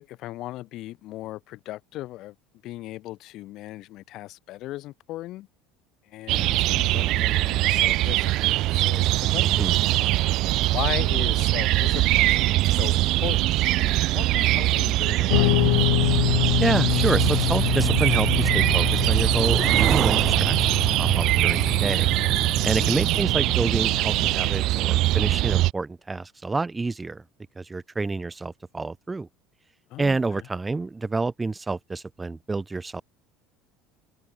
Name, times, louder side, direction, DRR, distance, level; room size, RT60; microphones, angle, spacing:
voice 1, 0.0-2.3 2.6-5.5 6.1-9.5 9.9-10.1 10.7-15.5 22.7-22.9 29.9-30.4, left 16 dB, 45° left, 2.6 m, -37 dB
sound 1, 6.3-25.7, right 17 dB, 50° right, 2.0 m, -22 dB
voice 2, 9.4-9.8 16.6-22.1 22.6-27.2 27.6-29.3 30.0-33.0, right 3 dB, 10° right, 2.9 m, -28 dB
Guitar, 15.3-24.6, left 40 dB or more, 70° left, 1.1 m, -27 dB
sound 2, 16.9-23.2, right 10 dB, 30° right, 7.4 m, -30 dB
cardioid pair, 155°, 0 cm